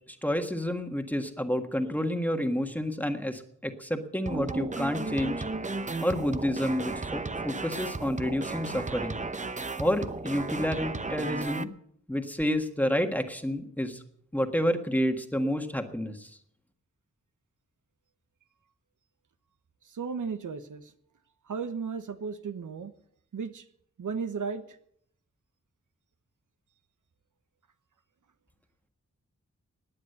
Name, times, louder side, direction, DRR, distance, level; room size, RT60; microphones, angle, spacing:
voice 1, 0.2-5.4 6.0-9.2 9.8-11.7 12.1-14.0 14.3-16.3, equal, 5° left, 5 dB, 1.6 m, -29 dB
sound 1, 4.3-11.6, right 3 dB, 25° right, 0.8 m, -34 dB
voice 2, 19.9-20.9 21.5-22.9 23.3-23.6 24.0-24.8, right 5 dB, 85° right, 9 dB, 1.2 m, -35 dB
18.0 x 9.9 x 6.7 m, 0.68 s
wide cardioid pair, 110°, 30 cm